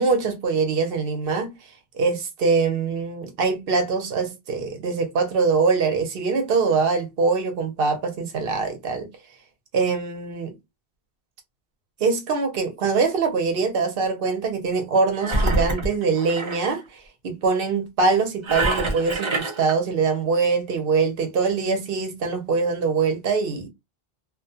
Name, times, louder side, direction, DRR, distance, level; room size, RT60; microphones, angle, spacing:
voice 1, 0.0-1.5 1.9-9.1 9.7-10.5 12.0-23.7, right 4 dB, 65° right, 0.8 m, -23 dB
Engine, 15.2-16.7 18.4-19.7, right 2 dB, 35° right, 0.5 m, -25 dB
2.3 x 2.2 x 2.6 m
omnidirectional pair, 1.1 m